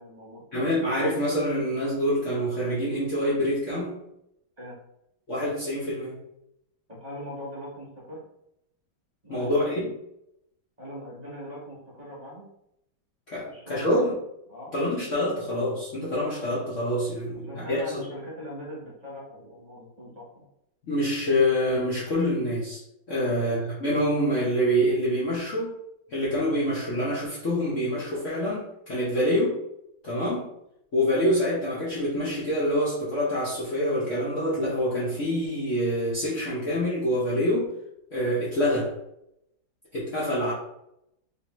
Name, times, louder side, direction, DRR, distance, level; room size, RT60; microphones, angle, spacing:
voice 1, 0.0-0.4 4.6-4.8 6.9-8.2 9.2-9.6 10.8-12.5 13.5-14.1 14.5-14.7 17.5-20.4 23.2-23.5, equal, 20° right, -8 dB, 1.4 m, -41 dB
voice 2, 0.5-4.0 5.3-6.2 9.3-9.9 13.3-14.1 14.7-18.0 20.8-22.8 23.1-25.7 26.1-29.6 30.0-30.5 30.9-37.6 38.1-38.9 39.9-40.5, equal, 50° left, -8 dB, 1.1 m, -26 dB
3.8 x 3.2 x 3.1 m, 0.80 s
omnidirectional pair, 2.2 m